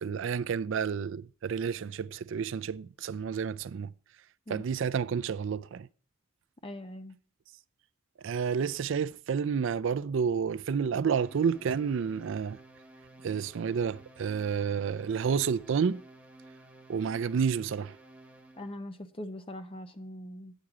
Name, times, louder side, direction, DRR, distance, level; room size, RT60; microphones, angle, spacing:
voice 1, 0.0-3.9 4.5-5.9 8.2-12.6 13.2-16.0 16.9-17.9, right 6 dB, 60° right, 0.4 m, -30 dB
voice 2, 6.6-7.2 18.6-20.5, left 1 dB, 25° left, 0.8 m, -41 dB
sound 1, 11.2-18.8, right 2 dB, 5° right, 1.2 m, -53 dB
9.2 x 8.5 x 4.8 m
head